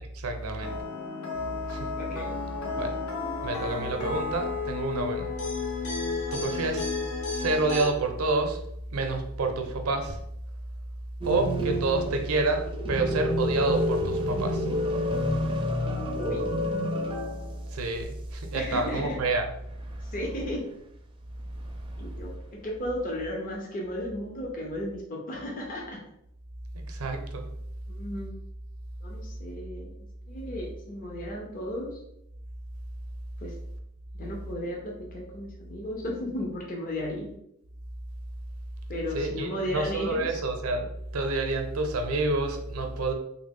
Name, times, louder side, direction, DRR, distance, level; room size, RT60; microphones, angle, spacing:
voice 1, 0.2-0.8 1.7-1.9 2.8-3.0 3.4-5.4 6.3-6.9 7.3-8.6 8.9-10.2 11.2-14.7 17.7-19.5 26.7-27.5 39.1-43.1, right 2 dB, 80° right, 5 dB, 0.6 m, -28 dB
sound 1, 0.6-7.9, left 4 dB, 85° left, 0.7 m, -33 dB
voice 2, 2.0-2.3 16.1-16.5 18.5-19.2 20.0-20.7 22.0-26.0 27.9-28.3 29.0-32.0 33.4-33.5 34.2-37.3 38.9-40.4, left 1 dB, 40° left, -2 dB, 0.6 m, -35 dB
sound 2, 11.2-17.7 18.0-18.1 19.8-20.5 21.5-22.3, left 1 dB, 25° right, 0.4 m, -29 dB
3.4 x 2.1 x 3.6 m, 0.77 s
head